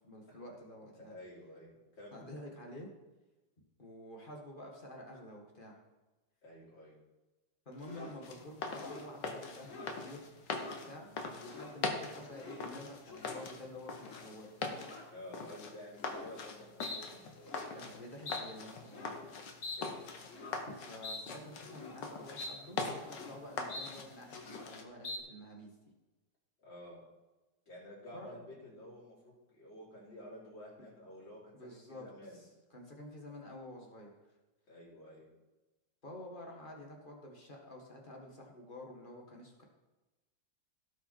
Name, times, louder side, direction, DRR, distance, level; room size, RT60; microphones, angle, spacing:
voice 1, 0.0-1.1 2.1-2.9 3.8-5.8 7.6-10.3 10.8-14.5 17.7-19.2 20.7-25.7 28.1-28.5 31.5-32.0 32.3-34.1 36.0-39.6, left 1 dB, 30° left, 0 dB, 1.7 m, -49 dB
voice 2, 1.0-2.3 6.4-7.0 15.1-17.6 19.8-20.0 26.6-27.0 27.7-32.4 34.7-35.2, left 1 dB, 85° left, -6 dB, 4.7 m, -51 dB
sound 1, 7.8-8.2 8.7-9.1 9.6-10.0 10.4-10.8 11.3-11.8 12.1-12.6 13.0-13.5 13.9-14.3 14.8-15.1 15.9-16.3 16.8-17.0 17.3-17.7 18.3-18.4 18.8-19.2 19.6-19.8 20.2-20.6 21.0-21.2 21.6-22.0 22.4-22.5 22.8-23.3 23.7-23.9 24.2-24.7 25.0-25.2, left 3 dB, 45° left, 1.7 m, -45 dB
sound 2, 8.2-24.8, left 4 dB, 70° left, 1.8 m, -42 dB
17.0 x 5.8 x 4.4 m, 1.1 s
omnidirectional pair, 2.0 m